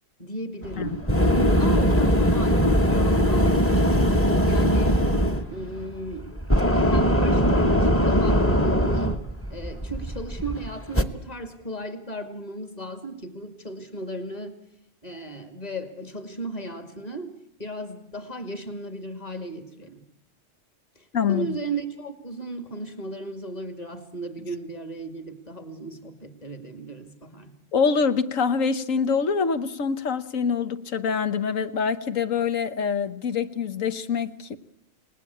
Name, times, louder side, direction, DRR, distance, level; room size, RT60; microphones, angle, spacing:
voice 1, 0.2-1.1 1.6-4.1 4.5-5.0 5.5-6.3 6.7-9.1 9.5-14.6 15.0-20.0 21.0-27.5, right 2 dB, 30° left, 2.4 m, -35 dB
sound 1, 0.6-11.0, equal, 10° left, 1.0 m, -21 dB
voice 2, 21.1-21.6 27.7-34.6, left 6 dB, 85° left, 1.5 m, -25 dB
29.5 x 18.5 x 8.6 m
omnidirectional pair, 1.3 m